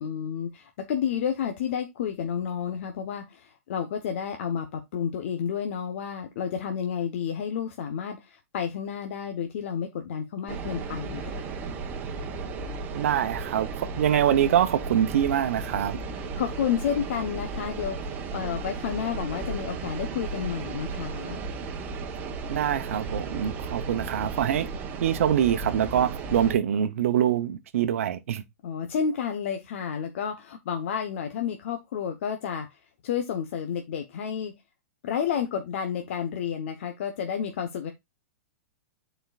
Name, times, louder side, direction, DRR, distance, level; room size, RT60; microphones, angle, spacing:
voice 1, 0.0-11.4 16.3-21.4 28.6-32.7 33.0-34.5 35.0-37.9, left 8 dB, 60° left, 1.0 m, -31 dB
sound 1, 10.5-26.5, right 4 dB, 25° right, 1.1 m, -35 dB
voice 2, 12.9-16.0 22.5-24.7 25.0-28.4, right 10 dB, 70° right, 0.8 m, -24 dB
10.5 x 4.5 x 2.4 m
hypercardioid pair, 155°, 8 cm